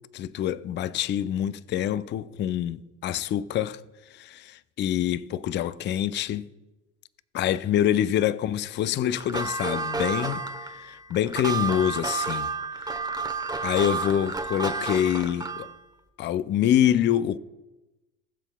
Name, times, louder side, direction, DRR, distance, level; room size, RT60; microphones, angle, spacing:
voice 1, 0.1-3.8 4.2-6.5 7.3-10.4 10.7-12.5 13.6-15.7 16.2-17.4, left 11 dB, 30° left, 0.4 m, -26 dB
sound 1, 9.2-15.8, right 4 dB, 10° right, 0.9 m, -31 dB
20.0 x 7.1 x 2.3 m
hypercardioid pair, 65°, 36 cm